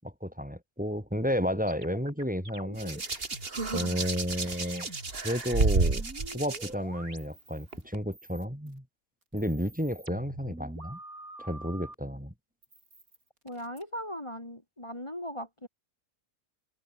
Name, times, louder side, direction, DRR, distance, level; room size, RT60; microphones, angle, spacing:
voice 1, 0.0-3.2 3.7-4.9 5.2-6.0 6.3-8.8 9.3-11.0 11.4-12.3, equal, 5° right, 4.8 m, -32 dB
sound 1, 1.5-5.2 5.5-7.8 8.1-8.8 9.2-11.9 12.6-13.8, right 2 dB, 75° right, 7.7 m, -47 dB
Hands, 2.8-6.7 7.7-8.0, right 3 dB, 40° right, 2.5 m, -30 dB
voice 2, 13.4-15.7, equal, 20° left, 3.7 m, -38 dB
omnidirectional pair, 1.5 m